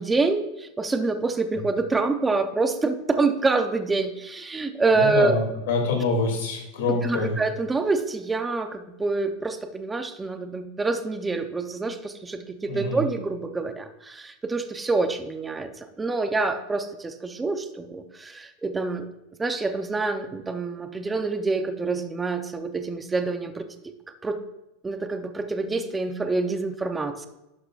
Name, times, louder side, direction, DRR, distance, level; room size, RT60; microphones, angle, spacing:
voice 1, 0.0-5.4 6.9-19.1 19.4-23.9 24.2-24.4 24.8-27.3, right 3 dB, 15° right, 8 dB, 0.7 m, -26 dB
voice 2, 4.9-7.3 12.7-13.0, left 3 dB, 75° left, 1 dB, 2.7 m, -25 dB
11.0 x 6.1 x 2.5 m, 0.96 s
supercardioid pair, 115°, 0 cm